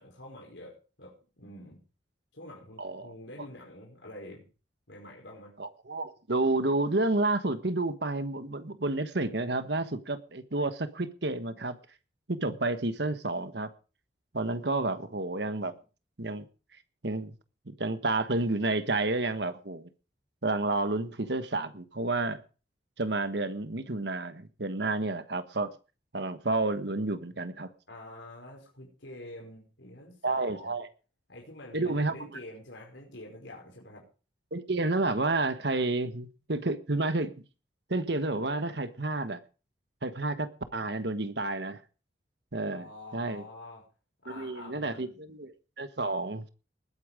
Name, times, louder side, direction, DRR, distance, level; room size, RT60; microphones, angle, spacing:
voice 1, 0.0-1.8 2.3-4.5 4.9-5.6 15.7-15.8 27.9-30.8 31.3-34.1 42.7-43.9 44.2-45.3, left 1 dB, 80° left, 5.2 m, -47 dB
voice 2, 2.8-3.1 5.6-11.8 12.3-13.7 14.3-15.7 16.2-16.5 17.0-17.3 17.7-19.9 20.4-22.4 23.0-25.7 26.1-27.7 30.2-30.9 31.7-32.1 34.5-37.3 37.9-39.4 40.0-41.8 42.5-42.9 43.1-43.4 44.3-46.5, right 2 dB, 65° right, 1.3 m, -30 dB
20.0 x 8.9 x 5.0 m
head